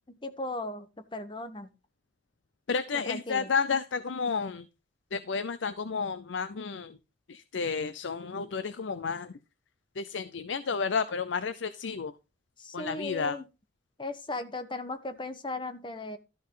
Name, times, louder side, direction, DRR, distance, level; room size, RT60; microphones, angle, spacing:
voice 1, 0.1-1.7 3.0-3.5 12.6-13.4 14.0-16.2, left 2 dB, 25° left, 10 dB, 1.1 m, -37 dB
voice 2, 2.7-4.7 5.1-7.0 7.3-9.3 10.0-12.1 12.7-13.4, left 5 dB, 85° left, 13 dB, 0.6 m, -31 dB
13.0 x 6.5 x 3.8 m, 0.28 s
head